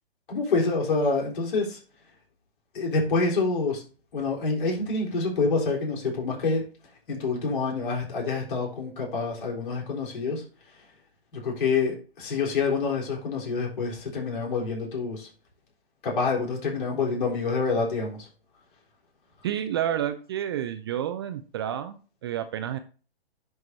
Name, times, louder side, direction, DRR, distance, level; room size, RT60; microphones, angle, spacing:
voice 1, 0.3-1.8 2.7-3.8 4.1-6.6 7.1-10.4 11.3-15.3 16.0-18.3, left 4 dB, 55° left, -2 dB, 3.9 m, -27 dB
voice 2, 19.4-22.0 22.2-22.8, right 10 dB, 25° right, 9 dB, 0.4 m, -29 dB
10.5 x 4.8 x 2.7 m, 0.36 s
figure-of-eight pair, 125°, 31 cm